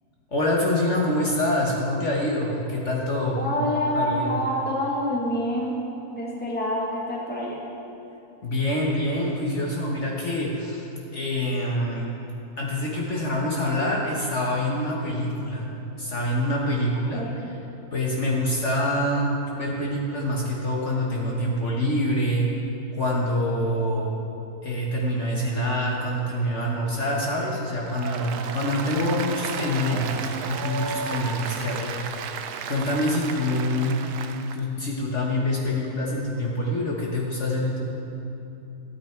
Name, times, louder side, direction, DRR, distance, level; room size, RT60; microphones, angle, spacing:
voice 1, 0.3-3.5 3.9-4.4 8.4-10.9 11.1-12.1 12.6-15.7 16.0-17.5 17.9-22.5 23.0-24.1 24.6-32.4 32.7-34.0 34.5-37.8, left 1 dB, 50° left, -3 dB, 1.5 m, -26 dB
voice 2, 3.4-5.8 6.1-7.6 17.1-17.4, left 1 dB, 5° left, -5 dB, 1.7 m, -27 dB
Applause, 27.8-34.6, right 6 dB, 85° right, 1.2 m, -33 dB
14.0 x 9.3 x 4.5 m, 3.0 s
omnidirectional pair, 1.6 m